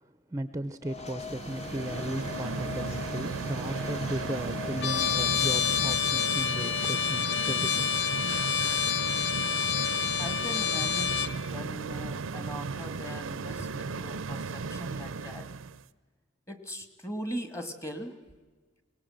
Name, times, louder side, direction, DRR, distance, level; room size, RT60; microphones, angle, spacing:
voice 1, 0.3-7.9, right 1 dB, 15° right, 11 dB, 0.6 m, -36 dB
sound 1, 0.8-6.0, left 4 dB, 35° left, 1.2 m, -40 dB
sound 2, 1.3-15.8, right 4 dB, 85° right, 0.6 m, -36 dB
Trumpet, 4.8-11.4, left 8 dB, 60° left, 0.7 m, -28 dB
voice 2, 9.9-15.5 16.5-18.1, equal, 15° left, 9 dB, 1.6 m, -40 dB
23.0 x 19.0 x 7.6 m, 1.3 s
head